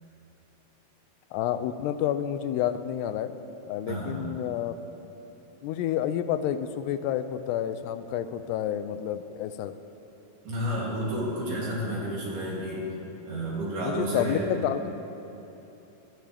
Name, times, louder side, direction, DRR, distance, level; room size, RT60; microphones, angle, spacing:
voice 1, 1.3-3.3 3.7-4.8 5.6-9.7 13.8-14.9, left 10 dB, 85° left, 10 dB, 2.7 m, -29 dB
voice 2, 3.9-4.2 10.4-12.8 13.3-14.5, equal, 65° right, -5 dB, 4.7 m, -31 dB
25.0 x 12.5 x 3.4 m, 3.0 s
omnidirectional pair, 4.7 m